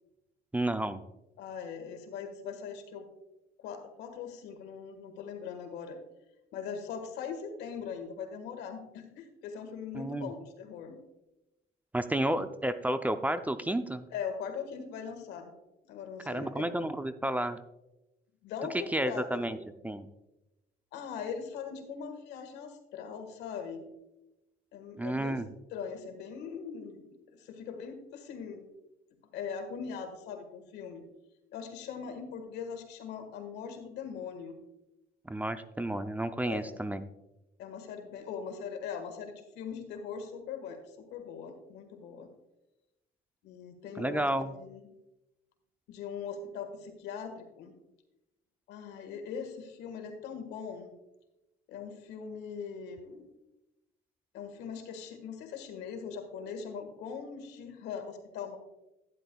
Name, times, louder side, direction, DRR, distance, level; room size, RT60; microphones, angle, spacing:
voice 1, 0.5-1.0 9.9-10.3 11.9-14.1 16.3-17.6 18.9-19.6 19.8-20.1 25.0-25.5 35.3-37.0 44.0-44.5, right 1 dB, 10° right, 10 dB, 0.4 m, -31 dB
voice 2, 1.4-3.1 3.6-6.0 6.5-11.0 14.1-15.5 15.9-16.6 18.4-19.5 20.9-23.8 24.7-25.4 25.7-27.0 27.3-28.6 29.3-31.0 31.5-34.6 36.4-36.8 37.6-42.3 43.4-44.9 45.9-47.7 48.7-50.9 51.7-53.3 54.3-58.6, left 6 dB, 85° left, 6 dB, 1.6 m, -41 dB
11.5 x 9.8 x 2.3 m, 0.95 s
cardioid pair, 110°, 17 cm